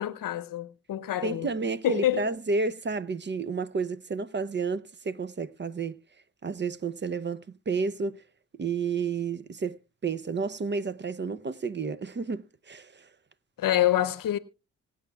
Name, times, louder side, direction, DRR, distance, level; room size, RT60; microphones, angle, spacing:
voice 1, 0.0-1.5 1.8-2.3 13.6-14.4, left 12 dB, 65° left, 0.8 m, -26 dB
voice 2, 1.2-6.0 6.4-8.2 8.6-13.1, right 4 dB, 30° right, 0.6 m, -31 dB
26.0 x 8.8 x 2.3 m
supercardioid pair, 45°, 36 cm